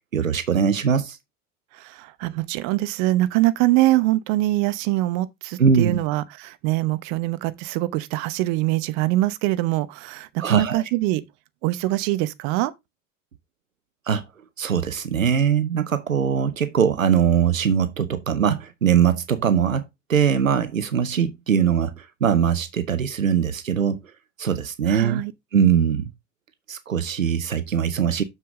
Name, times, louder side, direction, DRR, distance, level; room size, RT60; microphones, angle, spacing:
voice 1, 0.1-1.2 5.6-6.0 10.4-10.8 14.1-14.2 14.6-19.8 20.1-24.0 24.4-25.2 25.5-26.1 26.7-28.2, right 7 dB, 90° right, 0.7 m, -21 dB
voice 2, 1.8-11.2 11.6-12.7 24.9-25.3, right 17 dB, 55° right, 0.9 m, -23 dB
6.8 x 6.5 x 3.7 m
figure-of-eight pair, 70°, 39 cm